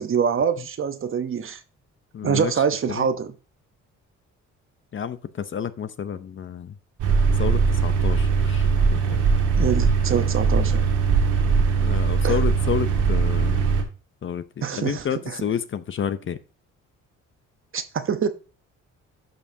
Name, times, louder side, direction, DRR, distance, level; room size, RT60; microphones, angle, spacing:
voice 1, 0.0-1.6 2.2-3.3 9.6-10.9 12.2-12.4 14.6-15.5 17.7-18.3, right 7 dB, 45° right, 0.9 m, -25 dB
voice 2, 2.1-2.5 2.9-3.1 4.9-5.2 5.5-6.7 7.4-9.2 9.8-9.9 11.8-13.6 14.2-16.4, left 7 dB, 40° left, 0.7 m, -30 dB
sound 1, 7.0-13.8, right 5 dB, 80° right, 1.8 m, -20 dB
11.0 x 5.5 x 2.7 m
cardioid pair, 90°, 30 cm